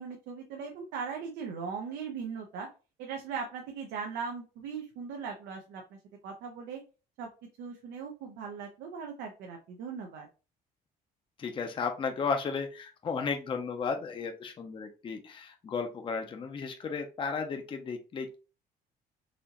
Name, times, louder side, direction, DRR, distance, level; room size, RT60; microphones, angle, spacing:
voice 1, 0.0-2.7 3.0-6.0 6.2-6.8 7.2-7.3 7.6-10.3, right 6 dB, 85° right, 2 dB, 0.7 m, -39 dB
voice 2, 11.4-18.4, left 5 dB, 30° left, 5 dB, 0.5 m, -34 dB
4.1 x 2.8 x 2.8 m, 0.33 s
cardioid pair, 110°, 17 cm